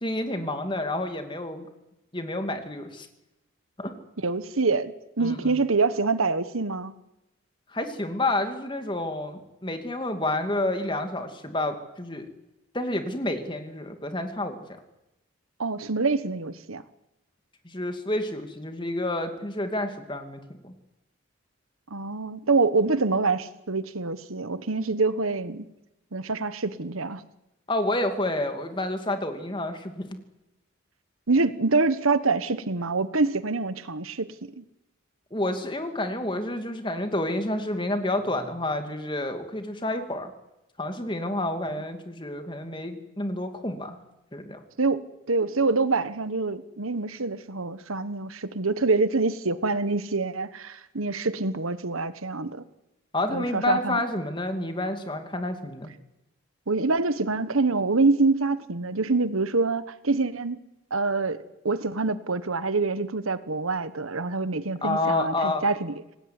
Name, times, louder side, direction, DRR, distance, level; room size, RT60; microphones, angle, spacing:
voice 1, 0.0-1.7 2.1-3.1 3.8-3.9 5.2-5.6 7.7-12.3 12.7-14.8 17.6-20.7 27.7-30.2 35.3-40.3 40.8-44.0 44.3-44.6 53.1-55.9 64.8-65.6, left 1 dB, 25° left, 7 dB, 2.7 m, -29 dB
voice 2, 4.2-6.9 15.6-16.8 21.9-25.6 26.1-27.2 31.3-34.6 44.8-52.6 53.3-54.0 56.7-60.6 60.9-65.9, right 3 dB, 85° right, 14 dB, 1.3 m, -26 dB
26.5 x 18.5 x 9.8 m, 0.94 s
head